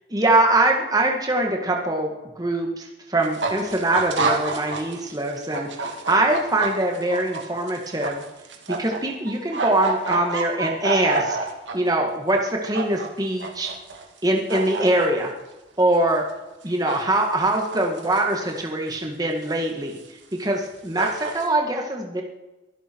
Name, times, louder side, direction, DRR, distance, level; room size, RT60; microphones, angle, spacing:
voice 1, 0.1-8.2 8.7-11.4 11.7-13.7 14.2-15.3 15.8-16.2 16.6-20.0 20.4-22.2, right 2 dB, 20° right, 1 dB, 1.7 m, -23 dB
sound 1, 3.2-5.0 5.3-9.0 9.3-11.7 12.4-13.1 13.4-14.2 14.5-15.1 16.8-17.2 17.5-18.4 19.0-19.1 20.0-20.1 20.6-20.7 21.0-21.5, right 3 dB, 80° right, 2.6 m, -28 dB
23.5 x 11.5 x 4.6 m, 1.1 s
head